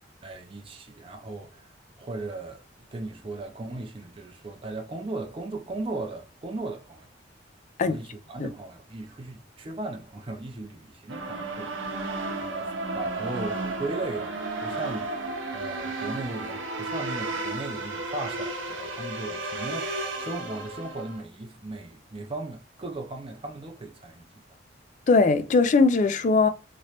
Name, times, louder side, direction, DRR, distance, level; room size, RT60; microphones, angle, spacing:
voice 1, 0.2-1.7 2.0-2.6 2.9-7.1 7.8-11.8 12.4-19.9 20.2-24.3, right 2 dB, 30° right, 0.5 m, -37 dB
sound 1, 11.1-21.2, right 2 dB, 80° right, 0.7 m, -33 dB
voice 2, 25.1-26.5, left 4 dB, 40° left, 0.3 m, -20 dB
3.1 x 2.9 x 2.8 m
head